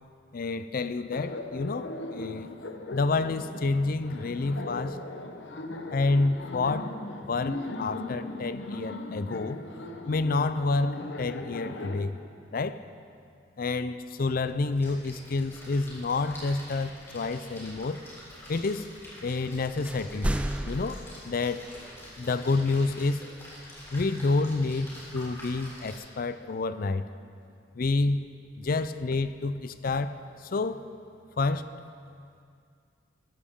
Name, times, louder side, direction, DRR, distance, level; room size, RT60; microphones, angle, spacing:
voice 1, 0.3-2.5 2.9-5.0 5.9-6.9 7.3-9.6 10.1-12.2 12.5-12.8 13.6-18.0 18.5-18.9 19.2-20.3 20.7-21.6 22.2-23.2 23.9-27.1 27.8-28.2 28.6-30.1 30.5-30.8 31.4-31.7, left 3 dB, 55° left, 12 dB, 0.5 m, -28 dB
Laughter, 1.1-12.0, left 2 dB, 90° left, 0.9 m, -38 dB
Splash splatter, 14.6-26.0, equal, 15° left, 3.7 m, -46 dB
sound 1, 19.9-21.0, right 1 dB, 5° right, 0.3 m, -30 dB
15.0 x 13.0 x 3.7 m, 2.3 s
head